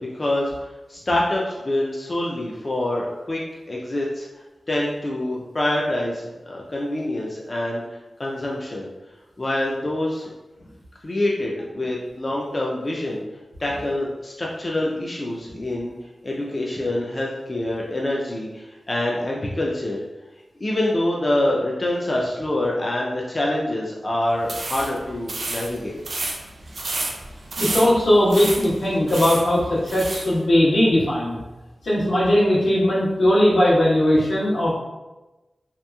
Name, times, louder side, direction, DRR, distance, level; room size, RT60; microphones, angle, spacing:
voice 1, 0.0-3.4 3.7-4.3 4.7-7.8 8.2-8.9 9.4-10.3 11.0-13.2 13.6-15.9 16.2-20.0 20.6-26.0, left 1 dB, 35° left, -3 dB, 0.3 m, -25 dB
sound 1, 24.4-30.3, right 2 dB, 60° right, 0.4 m, -31 dB
voice 2, 27.6-31.4 31.8-34.7, left 1 dB, 85° left, -9 dB, 1.1 m, -19 dB
2.8 x 2.5 x 2.2 m, 1.1 s
wide cardioid pair, 90°, 0 cm